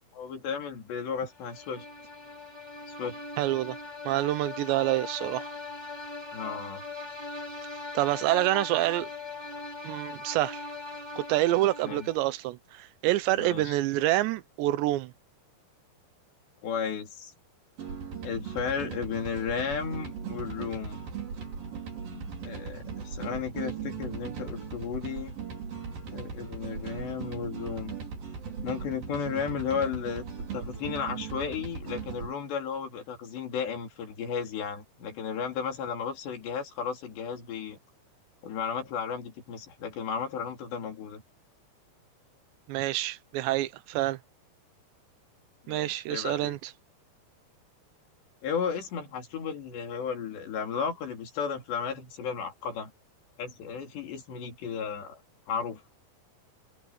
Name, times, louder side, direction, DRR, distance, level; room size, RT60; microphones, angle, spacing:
voice 1, 0.1-1.9 2.9-3.2 6.3-6.8 11.8-12.1 13.4-13.7 16.6-17.3 18.2-21.0 22.1-25.3 26.1-28.0 28.6-37.8 38.4-41.2 45.7-46.5 48.4-52.9 53.4-55.2 55.5-55.8, left 6 dB, 75° left, 5.7 m, -34 dB
sound 1, 1.4-12.3, left 3 dB, 10° left, 2.0 m, -40 dB
voice 2, 3.4-3.8 4.1-5.5 7.9-9.1 9.8-10.6 11.2-15.1 42.7-44.2 45.7-46.7, right 16 dB, 85° right, 3.1 m, -27 dB
sound 2, 17.8-32.3, right 6 dB, 55° right, 6.5 m, -38 dB
omnidirectional pair, 5.0 m